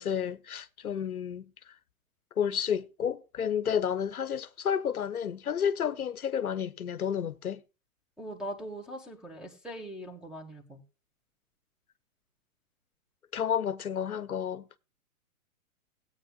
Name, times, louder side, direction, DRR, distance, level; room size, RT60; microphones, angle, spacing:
voice 1, 0.0-1.7 2.4-7.6 13.3-14.8, left 8 dB, 85° left, 0.8 m, -31 dB
voice 2, 8.2-10.8, right 1 dB, ahead, 1.7 m, -41 dB
17.5 x 8.7 x 2.4 m
figure-of-eight pair, 115°, 43 cm